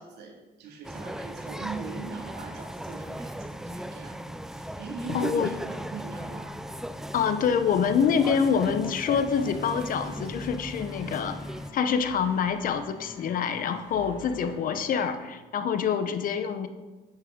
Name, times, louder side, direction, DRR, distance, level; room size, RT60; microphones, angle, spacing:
voice 1, 0.0-6.6 15.7-15.8, right 4 dB, 80° right, 1 dB, 2.1 m, -42 dB
sound 1, 0.8-11.7, equal, 5° right, 0.4 m, -37 dB
voice 2, 5.1-5.5 7.1-11.4 11.7-16.7, left 7 dB, 55° left, 10 dB, 0.8 m, -26 dB
sound 2, 7.6-15.5, left 3 dB, 20° left, 3.5 m, -48 dB
9.9 x 8.8 x 3.7 m, 1.2 s
cardioid pair, 110°, 17 cm